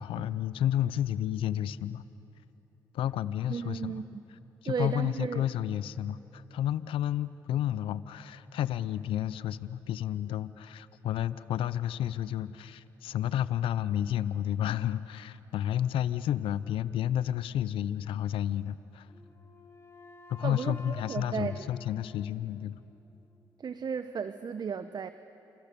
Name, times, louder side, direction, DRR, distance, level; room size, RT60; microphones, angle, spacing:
voice 1, 0.0-2.0 2.9-4.0 4.6-19.1 20.3-22.8, left 11 dB, 75° left, 16 dB, 0.7 m, -31 dB
voice 2, 3.5-4.2 4.6-5.5 20.4-21.7 23.6-25.1, right 6 dB, 50° right, 11 dB, 1.0 m, -34 dB
Wind instrument woodwind instrument, 19.0-23.0, left 2 dB, 30° left, 5.4 m, -52 dB
29.0 x 28.0 x 7.0 m, 2.9 s
supercardioid pair, 50°, 9 cm